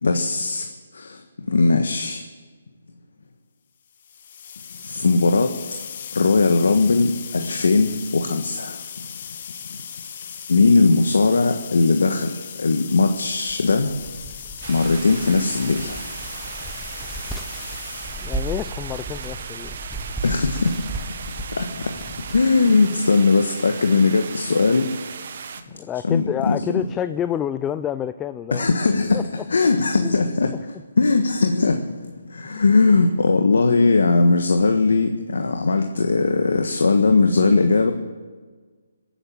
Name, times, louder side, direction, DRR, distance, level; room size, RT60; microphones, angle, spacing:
voice 1, 0.0-1.2 1.5-2.2 4.8-5.6 6.1-8.8 10.5-13.9 14.7-16.0 20.2-20.8 21.6-22.0 22.3-24.9 26.0-26.8 28.5-30.5 31.0-37.9, left 3 dB, 75° left, 5 dB, 1.4 m, -19 dB
sound 1, 3.9-18.9, left 8 dB, 45° left, 1.3 m, -38 dB
sound 2, 13.5-22.8, right 1 dB, ahead, 0.8 m, -35 dB
sound 3, 14.6-25.6, right 6 dB, 50° right, 1.3 m, -36 dB
voice 2, 18.2-19.8 25.7-28.7 29.1-29.4 30.0-30.1 30.4-30.6 32.6-32.7, left 10 dB, 15° left, 12 dB, 0.4 m, -28 dB
20.5 x 9.0 x 7.7 m, 1.4 s
hypercardioid pair, 155°, 0 cm